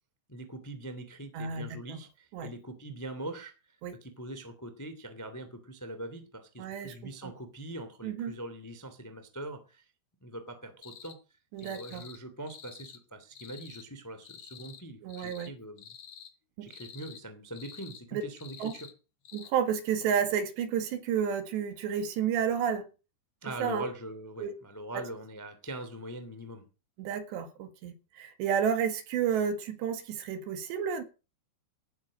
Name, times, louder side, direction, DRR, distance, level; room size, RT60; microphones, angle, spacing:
voice 1, 0.3-9.9 10.2-15.9 16.6-18.9 23.4-26.6, right 1 dB, 15° left, 0.6 m, -42 dB
voice 2, 1.3-2.0 2.3-2.5 3.8-3.9 6.6-6.9 7.2-7.3 8.0-8.4 11.5-12.0 15.0-15.5 16.6-16.7 18.1-18.2 18.6-18.7 19.3-22.9 23.6-23.9 24.4-24.5 24.9-25.0 27.0-31.0, right 8 dB, 65° right, 3.8 m, -31 dB
sound 1, 10.8-11.2 11.6-12.2 12.5-13.0 13.3-13.9 14.2-14.8 15.1-15.5 15.8-16.3 16.7-17.2 17.5-18.0 18.4-18.9 19.2-19.5, left 8 dB, 65° left, 1.7 m, -49 dB
17.5 x 8.9 x 6.5 m
omnidirectional pair, 5.8 m